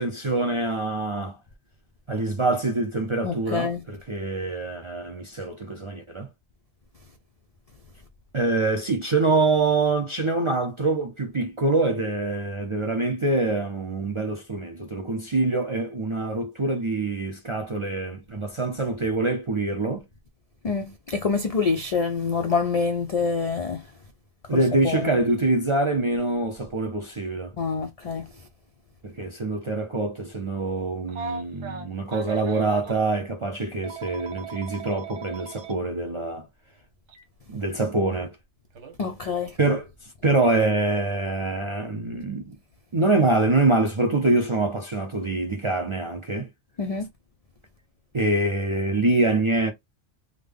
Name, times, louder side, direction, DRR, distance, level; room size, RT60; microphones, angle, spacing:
voice 1, 0.0-1.4 2.1-6.3 8.3-20.0 24.5-27.5 29.0-36.5 37.5-38.4 39.6-39.8 40.2-42.6 42.9-46.5 48.1-49.7, right 2 dB, 45° right, 0.4 m, -25 dB
voice 2, 3.2-3.8 20.6-23.9 24.5-25.2 27.6-28.3 39.0-39.6 46.8-47.1, left 5 dB, 65° left, 0.3 m, -26 dB
Telephone, 31.1-33.0 33.8-35.7 37.1-37.2 38.8-39.0, right 5 dB, 75° right, 1.1 m, -37 dB
3.6 x 2.1 x 3.3 m
omnidirectional pair, 1.2 m